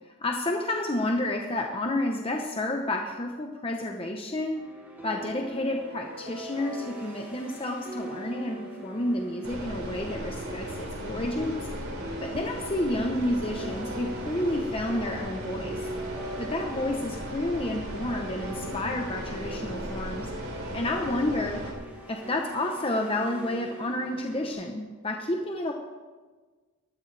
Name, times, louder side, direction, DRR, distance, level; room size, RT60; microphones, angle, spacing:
voice 1, 0.2-4.7 5.0-11.7 12.2-15.9 16.4-20.3 20.7-21.7 22.1-25.7, left 1 dB, 25° left, 2 dB, 0.9 m, -30 dB
sound 1, 4.5-24.5, right 1 dB, 10° right, 3.8 m, -42 dB
sound 2, 9.4-21.7, equal, 85° right, 3.3 m, -37 dB
19.5 x 13.5 x 3.4 m, 1.4 s
head